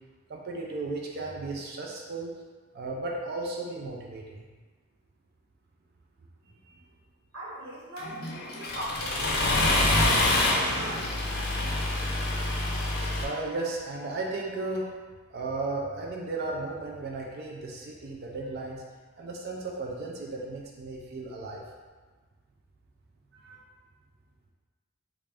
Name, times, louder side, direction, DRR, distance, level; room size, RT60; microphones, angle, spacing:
voice 1, 0.3-2.3 2.7-4.4 13.1-15.0 15.3-18.8 19.2-21.6 23.3-23.7, right 2 dB, 45° right, -1 dB, 0.4 m, -35 dB
voice 2, 7.3-11.1, right 1 dB, 80° right, -8 dB, 1.2 m, -40 dB
Accelerating revving vroom, 8.0-13.2, left 2 dB, 45° left, 0.5 m, -26 dB
3.2 x 2.5 x 3.3 m, 1.4 s
head